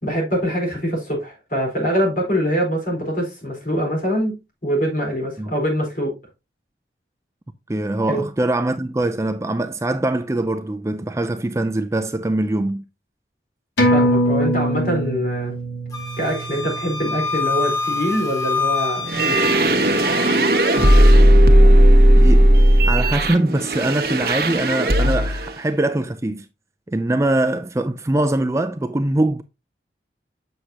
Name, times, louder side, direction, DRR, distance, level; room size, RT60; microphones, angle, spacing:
voice 1, 0.0-4.3 4.6-6.2 8.1-8.2 13.9-15.5 16.2-19.5, equal, 50° left, 4.1 m, -24 dB
voice 2, 7.7-12.8 22.2-22.5 22.9-26.5 26.9-29.4, right 1 dB, 15° right, 0.4 m, -22 dB
sound 1, 13.8-18.7 19.1-19.2, equal, 80° left, 2.4 m, -23 dB
Wind instrument woodwind instrument, 15.9-21.1, left 4 dB, 20° left, 1.3 m, -26 dB
sound 2, 19.0-25.5, right 1 dB, 55° right, 1.1 m, -14 dB
7.9 x 6.4 x 2.8 m
head